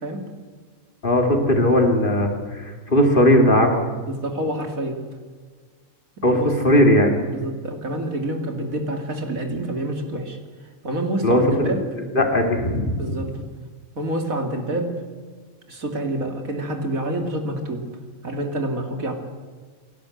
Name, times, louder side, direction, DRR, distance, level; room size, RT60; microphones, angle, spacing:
voice 1, 1.0-3.7 6.2-7.1 11.2-11.4 11.7-11.8 12.1-13.2, left 1 dB, 40° left, 3 dB, 2.8 m, -18 dB
voice 2, 4.0-5.0 6.2-6.5 7.3-10.4 10.8-11.8 13.0-13.4 14.0-14.9 15.7-17.8 18.2-19.1, right 1 dB, 75° right, 4 dB, 3.1 m, -27 dB
28.5 x 11.5 x 8.0 m, 1.5 s
omnidirectional pair, 1.4 m